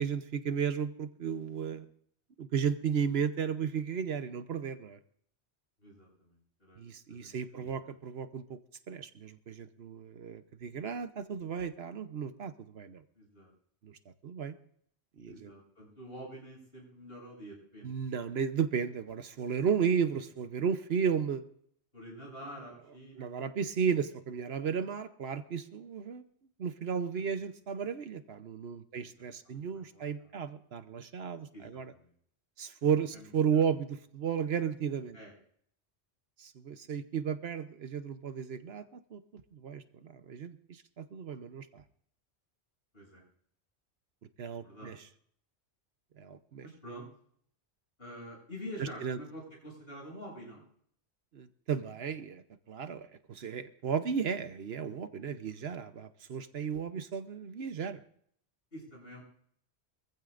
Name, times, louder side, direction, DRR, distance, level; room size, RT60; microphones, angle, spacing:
voice 1, 0.0-1.9 2.4-5.0 6.8-8.6 8.9-13.0 13.8-14.0 14.2-14.5 15.2-15.5 17.8-21.4 23.2-26.2 26.6-31.9 32.6-35.2 36.4-39.2 39.5-41.8 44.4-45.0 46.2-46.6 48.8-49.2 51.3-58.0, right 7 dB, 70° right, 10 dB, 1.1 m, -34 dB
voice 2, 5.8-7.9 13.1-13.5 15.3-18.1 21.9-23.3 27.3-27.4 29.0-30.4 31.5-32.1 33.1-33.6 35.1-35.3 42.9-43.2 44.5-44.9 46.6-47.1 48.0-50.6 55.4-55.9 58.7-59.2, equal, 60° left, -4 dB, 8.3 m, -48 dB
24.5 x 15.0 x 2.5 m, 0.64 s
omnidirectional pair, 1.1 m